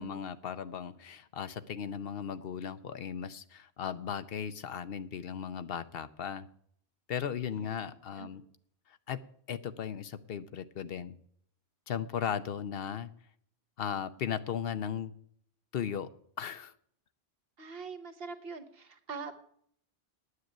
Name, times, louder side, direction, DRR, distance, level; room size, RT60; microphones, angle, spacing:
voice 1, 0.0-6.5 7.1-8.4 8.9-11.2 11.9-13.1 13.8-15.1 15.7-16.1 16.4-16.7, left 8 dB, 65° left, 12 dB, 0.8 m, -37 dB
voice 2, 17.6-19.3, right 5 dB, 65° right, 8 dB, 1.3 m, -43 dB
9.6 x 7.3 x 9.2 m, 0.64 s
omnidirectional pair, 1.1 m